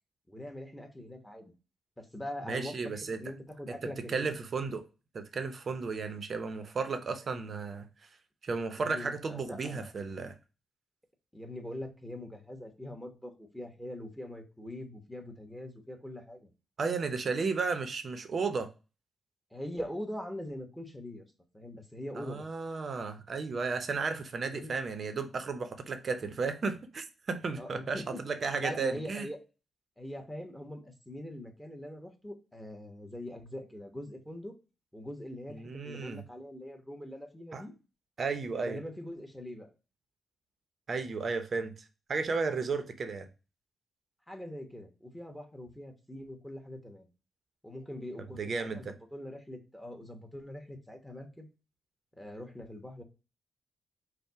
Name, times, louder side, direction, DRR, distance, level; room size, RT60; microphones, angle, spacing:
voice 1, 0.3-1.5 2.0-4.3 8.8-9.9 11.3-16.5 19.5-21.3 21.5-22.5 24.4-24.8 27.6-28.2 28.6-29.4 30.0-34.5 34.9-37.7 38.5-39.7 44.3-47.1 47.6-51.5 52.2-53.0, left 1 dB, 5° left, 1.0 m, -43 dB
voice 2, 2.4-3.2 3.8-4.9 5.1-7.9 8.4-10.3 16.8-18.7 22.2-29.3 35.5-36.2 37.5-37.6 38.2-38.8 40.9-41.7 42.1-43.3 48.4-48.9, right 4 dB, 50° right, 0.6 m, -34 dB
5.4 x 2.1 x 4.6 m
cardioid pair, 100°, 0 cm